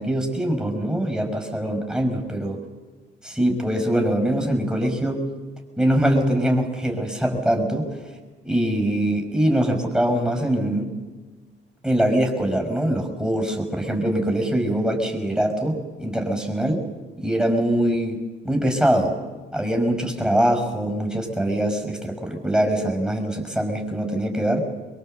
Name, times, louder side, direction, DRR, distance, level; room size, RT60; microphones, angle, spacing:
voice 1, 0.0-2.6 3.2-5.3 5.8-7.9 8.4-10.9 11.8-16.8 17.2-18.2 18.4-19.1 19.5-24.6, right 1 dB, 5° right, 3 dB, 5.4 m, -23 dB
24.5 x 22.5 x 7.8 m, 1.3 s
cardioid pair, 90°, 20 cm